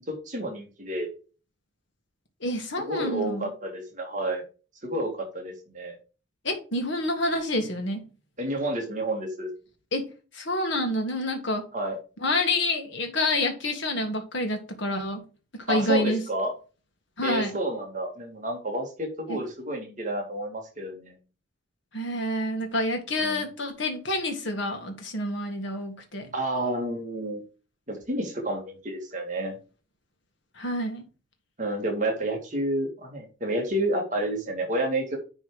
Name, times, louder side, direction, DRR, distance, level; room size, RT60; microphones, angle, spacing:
voice 1, 0.1-1.1 2.8-4.4 4.8-6.0 8.4-9.5 11.7-12.0 15.7-16.5 17.2-21.1 23.2-23.5 26.3-27.4 27.9-29.5 31.6-35.2, right 1 dB, 40° right, 1 dB, 1.9 m, -30 dB
voice 2, 2.4-3.5 6.4-8.0 9.9-10.0 10.3-11.6 12.2-15.2 15.7-16.2 17.2-17.6 21.9-26.3 30.6-31.0, left 1 dB, 65° left, 4 dB, 1.8 m, -28 dB
10.0 x 3.6 x 4.7 m, 0.34 s
head